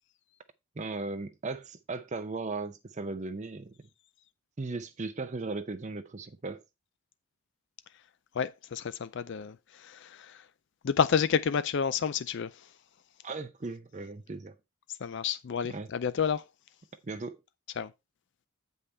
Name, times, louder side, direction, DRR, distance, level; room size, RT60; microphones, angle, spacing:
voice 1, 0.8-3.7 4.6-6.6 13.2-14.6 15.7-15.9 17.0-17.4, right 3 dB, 30° right, 0.6 m, -37 dB
voice 2, 8.3-10.5 10.8-12.7 14.9-16.5 17.8-17.9, left 7 dB, 55° left, 0.4 m, -30 dB
8.3 x 5.5 x 4.3 m
head